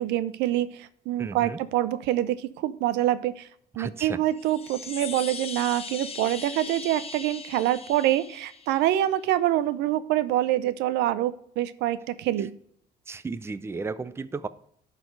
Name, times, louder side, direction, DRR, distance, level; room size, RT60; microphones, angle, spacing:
voice 1, 0.0-3.5 3.7-12.5, right 13 dB, 85° right, 15 dB, 0.6 m, -26 dB
voice 2, 1.2-1.6 3.8-4.2 13.1-14.5, right 4 dB, 15° right, 14 dB, 0.5 m, -34 dB
Chime, 4.3-9.0, left 5 dB, 35° left, 0.9 m, -39 dB
11.0 x 4.2 x 5.2 m, 0.66 s
cardioid pair, 110°, 17 cm